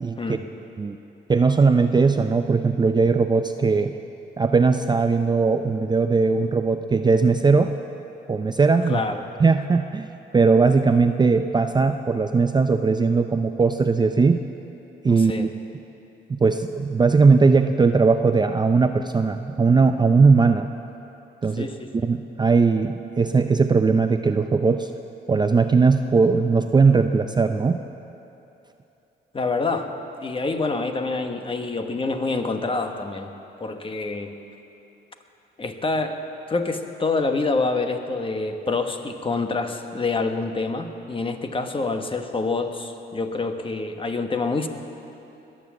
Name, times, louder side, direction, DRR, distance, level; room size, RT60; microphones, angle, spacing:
voice 1, 0.0-0.4 0.8-1.0 1.3-3.9 4.4-7.7 8.3-9.0 9.4-10.1 10.3-14.4 15.0-15.5 16.3-20.7 21.4-21.7 22.0-24.9 25.3-27.8, right 4 dB, 20° right, 7 dB, 0.5 m, -19 dB
voice 2, 8.9-9.3 15.1-15.5 21.6-21.9 29.3-29.9 30.2-33.3 33.6-34.3 35.6-36.2 36.5-44.7, left 3 dB, 25° left, 6 dB, 1.2 m, -26 dB
21.0 x 7.3 x 7.4 m, 2.9 s
cardioid pair, 90°, 20 cm